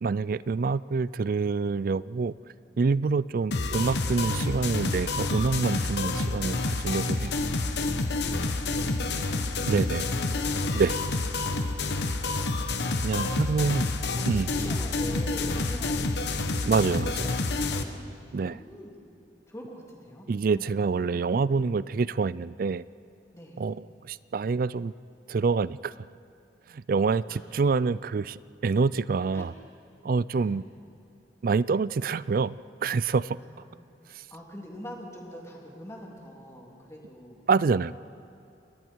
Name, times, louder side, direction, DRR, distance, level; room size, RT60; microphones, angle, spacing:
voice 1, 0.0-2.3 2.8-7.3 9.7-10.0 10.8-10.9 13.0-13.8 14.3-14.5 16.7-17.1 18.3-18.6 20.3-22.8 23.6-24.9 25.3-25.9 26.7-28.4 28.6-29.5 30.0-30.6 31.4-32.5 32.8-33.4 37.5-38.0, right 4 dB, 50° right, 19 dB, 0.4 m, -26 dB
sound 1, 3.5-17.8, left 3 dB, 70° left, 1.2 m, -28 dB
voice 2, 8.1-11.1 14.1-18.9 19.5-20.8 23.3-23.6 27.3-27.4 29.3-29.5 30.3-30.6 33.4-33.6 34.3-37.4, equal, 15° left, -1 dB, 3.2 m, -45 dB
29.0 x 21.5 x 4.6 m, 2.7 s
head